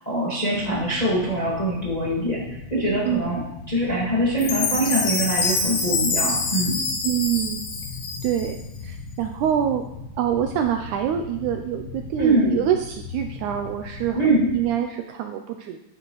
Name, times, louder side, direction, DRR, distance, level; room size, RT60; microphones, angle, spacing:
voice 1, 0.0-6.8 12.2-12.6 14.1-14.5, right 1 dB, 25° left, -6 dB, 0.8 m, -23 dB
sound 1, 0.5-14.7, left 4 dB, 90° left, 2.8 m, -39 dB
Chime, 4.4-8.6, left 3 dB, 65° left, 2.9 m, -26 dB
voice 2, 7.0-7.6 8.2-8.6 8.8-9.8 10.2-14.2 14.5-15.8, right 10 dB, 85° right, 5 dB, 1.7 m, -25 dB
10.0 x 7.5 x 3.1 m, 0.86 s
omnidirectional pair, 3.9 m